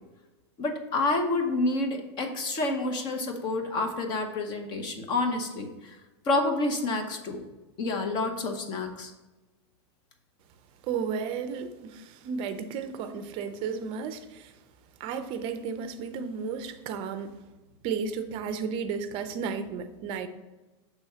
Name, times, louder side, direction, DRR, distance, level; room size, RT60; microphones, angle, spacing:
voice 1, 0.6-6.0 6.2-7.4 7.8-9.1, left 2 dB, 30° left, 4 dB, 0.9 m, -28 dB
voice 2, 10.9-14.5 15.0-17.3 17.8-20.3, right 6 dB, 35° right, 9 dB, 0.5 m, -33 dB
6.0 x 3.5 x 5.6 m, 1.1 s
supercardioid pair, 150°, 15 cm